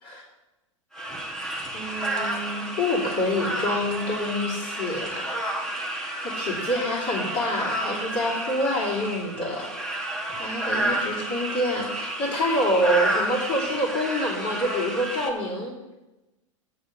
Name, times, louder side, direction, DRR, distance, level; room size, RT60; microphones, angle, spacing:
sound 1, 0.9-15.3, right 1 dB, 5° left, 1.3 m, -30 dB
voice 1, 1.7-5.2 6.4-9.7 10.3-15.7, left 1 dB, 50° left, -7 dB, 3.1 m, -27 dB
7.1 x 6.6 x 6.6 m, 1.0 s
hypercardioid pair, 105°, 16 cm